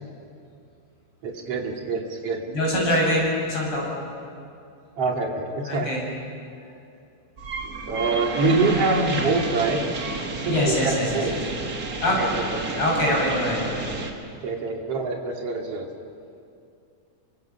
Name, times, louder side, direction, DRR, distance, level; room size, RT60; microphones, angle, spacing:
voice 1, 1.2-2.4 2.7-2.8 5.0-5.9 7.9-9.8 10.3-11.3 12.1-12.3 12.5-12.6 14.4-15.9, right 3 dB, 55° right, 1 dB, 3.2 m, -25 dB
voice 2, 2.4-3.9 5.6-6.0 10.5-11.4 12.0-12.2 12.7-13.8, left 1 dB, 45° left, -3 dB, 7.0 m, -24 dB
sound 1, 7.4-14.1, right 3 dB, 35° right, 1.8 m, -31 dB
28.5 x 24.5 x 5.8 m, 2.4 s
omnidirectional pair, 3.4 m